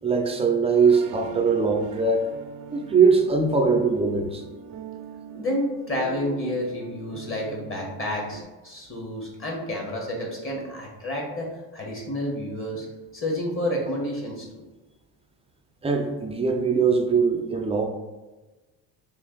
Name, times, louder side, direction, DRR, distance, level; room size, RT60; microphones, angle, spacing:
voice 1, 0.0-2.3 2.7-4.4 15.8-17.8, right 5 dB, 15° right, 3 dB, 0.4 m, -21 dB
sound 1, 0.7-8.4, right 6 dB, 70° right, 0.5 m, -41 dB
voice 2, 5.3-12.9 13.1-14.4, left 1 dB, 30° left, -1 dB, 1.2 m, -30 dB
3.2 x 2.5 x 3.8 m, 1.1 s
cardioid pair, 100°, 44 cm